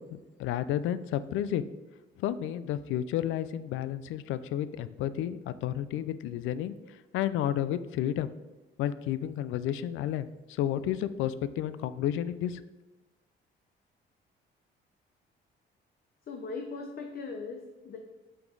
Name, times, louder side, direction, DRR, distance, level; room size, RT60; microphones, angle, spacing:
voice 1, 0.1-1.6 2.2-6.7 7.1-8.3 8.8-12.6, left 11 dB, 85° left, 15 dB, 0.4 m, -31 dB
voice 2, 16.3-18.0, left 4 dB, 50° left, 4 dB, 0.7 m, -39 dB
5.9 x 5.9 x 3.9 m, 1.1 s
cardioid pair, 90°, 20 cm